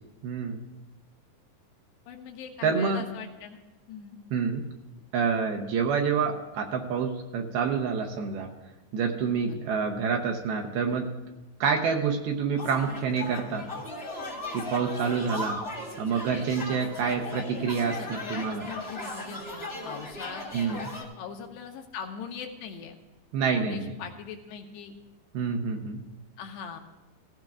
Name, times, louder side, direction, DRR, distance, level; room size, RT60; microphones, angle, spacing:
voice 1, 0.2-0.6 2.6-3.0 4.3-4.6 5.1-8.5 8.9-11.1 11.6-13.8 14.5-15.6 16.0-18.7 20.5-20.9 23.3-23.9 25.3-26.0, right 6 dB, 75° right, 2 dB, 2.5 m, -27 dB
voice 2, 2.1-3.6 3.9-4.2 9.6-9.7 18.0-23.0 23.6-24.9 26.4-26.8, left 7 dB, 80° left, 4 dB, 2.7 m, -41 dB
sound 1, 12.6-21.0, left 2 dB, 45° left, 0.8 m, -37 dB
17.0 x 15.0 x 2.4 m, 1.1 s
omnidirectional pair, 5.0 m